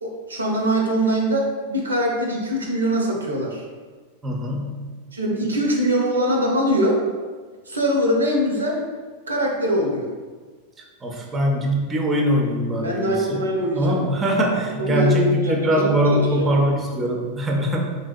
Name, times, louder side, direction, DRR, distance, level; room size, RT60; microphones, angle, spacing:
voice 1, 0.0-3.6 5.1-7.0 7.7-8.8 9.3-10.1 12.8-14.0 14.8-16.5, equal, 75° right, 0 dB, 0.5 m, -22 dB
voice 2, 4.2-4.9 11.0-13.4 13.7-17.9, equal, 20° right, 0 dB, 0.4 m, -22 dB
3.3 x 2.6 x 2.2 m, 1.5 s
figure-of-eight pair, 90°, 0 cm